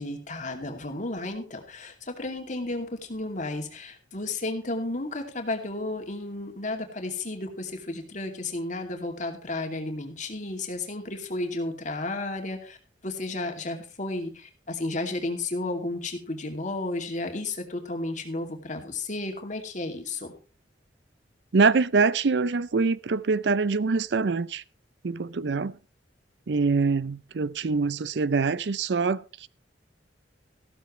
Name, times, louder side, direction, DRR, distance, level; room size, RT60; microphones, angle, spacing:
voice 1, 0.0-12.8 13.0-20.3, left 2 dB, 45° left, 2.5 m, -33 dB
voice 2, 21.5-24.6 25.0-25.7 26.5-29.5, right 4 dB, 65° right, 0.5 m, -24 dB
14.5 x 13.0 x 3.2 m
head